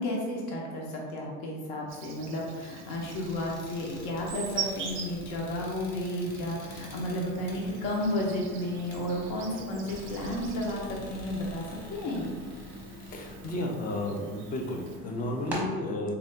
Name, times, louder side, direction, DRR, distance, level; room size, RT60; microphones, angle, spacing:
voice 1, 0.0-11.6 11.9-12.3, left 1 dB, 70° left, -2 dB, 0.9 m, -32 dB
Insect, 1.9-15.0, right 6 dB, 40° right, 0.4 m, -44 dB
sound 1, 2.9-13.6, left 2 dB, 50° left, 0.8 m, -49 dB
sound 2, 6.0-15.6, equal, 5° right, 0.7 m, -45 dB
voice 2, 13.1-16.1, left 1 dB, 25° left, 2 dB, 0.3 m, -32 dB
3.7 x 2.6 x 3.3 m, 1.5 s
cardioid pair, 165°, 34 cm